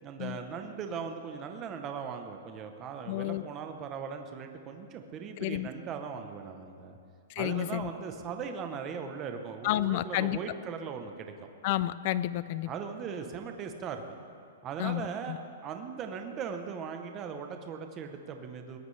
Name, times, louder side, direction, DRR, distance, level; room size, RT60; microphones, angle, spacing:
voice 1, 0.0-7.0 7.4-11.5 12.7-14.2 14.6-18.8, right 6 dB, 15° right, 5 dB, 0.8 m, -39 dB
voice 2, 3.1-3.4 5.4-5.7 7.3-7.9 9.6-10.4 11.6-12.7 14.8-15.4, left 14 dB, 30° left, 17 dB, 0.3 m, -30 dB
21.0 x 18.0 x 3.3 m, 2.4 s
hypercardioid pair, 180°, 0 cm